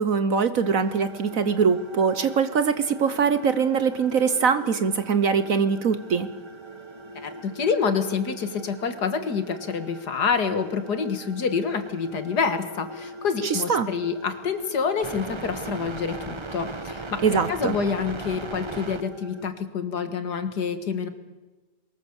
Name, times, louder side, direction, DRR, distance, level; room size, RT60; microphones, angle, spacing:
voice 1, 0.0-6.3 13.4-13.9 17.2-17.8, right 6 dB, 55° right, 12 dB, 1.2 m, -22 dB
sound 1, 0.6-19.5, right 2 dB, 20° right, 0.8 m, -40 dB
voice 2, 7.2-21.1, left 5 dB, 65° left, 9 dB, 2.2 m, -27 dB
23.0 x 20.5 x 7.1 m, 1.2 s
omnidirectional pair, 1.9 m